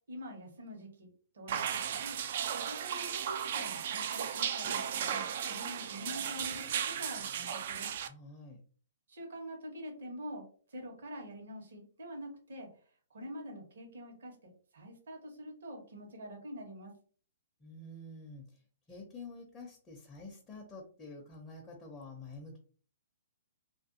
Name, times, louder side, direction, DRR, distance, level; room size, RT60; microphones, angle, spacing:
voice 1, 0.1-2.2 2.7-4.8 5.1-7.9 9.1-12.7 13.1-16.9, equal, 70° right, 2 dB, 1.0 m, -46 dB
sound 1, 1.5-8.1, right 8 dB, 55° right, 0.3 m, -35 dB
voice 2, 8.1-8.6 17.6-18.6 18.9-22.6, left 2 dB, 15° left, -1 dB, 0.6 m, -48 dB
2.5 x 2.2 x 2.6 m, 0.43 s
hypercardioid pair, 130°, 0 cm